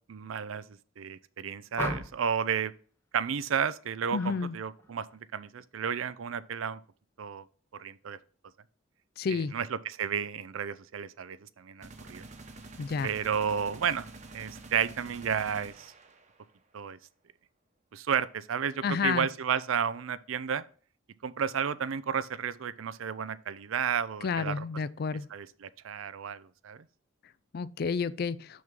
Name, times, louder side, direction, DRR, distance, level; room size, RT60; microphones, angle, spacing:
voice 1, 0.1-2.7 3.1-5.1 5.3-6.8 7.2-7.4 7.8-8.2 9.3-12.3 13.0-14.1 14.3-15.9 16.7-17.0 17.9-20.6 21.2-24.7 25.3-26.8, right 7 dB, 85° right, 0.5 m, -32 dB
sound 1, 1.8-2.4 4.1-4.4 4.8-5.2, left 1 dB, 10° left, 0.7 m, -37 dB
voice 2, 4.1-4.5 9.2-9.5 12.8-13.1 18.8-19.3 24.2-25.3 27.5-28.4, left 5 dB, 50° left, 0.4 m, -30 dB
sound 2, 11.8-16.6, right 2 dB, 35° right, 1.0 m, -48 dB
6.2 x 5.9 x 3.7 m
head